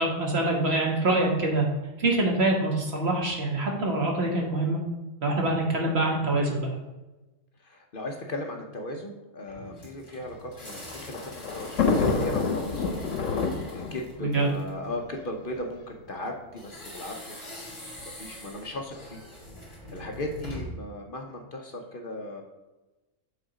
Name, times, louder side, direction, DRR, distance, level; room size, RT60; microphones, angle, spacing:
voice 1, 0.0-1.7 2.0-4.8 5.2-6.7 14.2-14.5, right 2 dB, 55° right, 0 dB, 1.6 m, -25 dB
voice 2, 7.6-13.1 13.7-17.4 18.0-19.2 19.9-22.4, left 1 dB, 50° left, 2 dB, 0.9 m, -37 dB
sound 1, 9.5-14.8 16.6-20.9, equal, 20° left, 2.7 m, -44 dB
Thunder, 10.3-15.7 16.5-16.6 16.8-16.9 18.0-18.3, left 4 dB, 80° left, 1.3 m, -29 dB
7.8 x 3.8 x 4.9 m, 1.1 s
omnidirectional pair, 1.3 m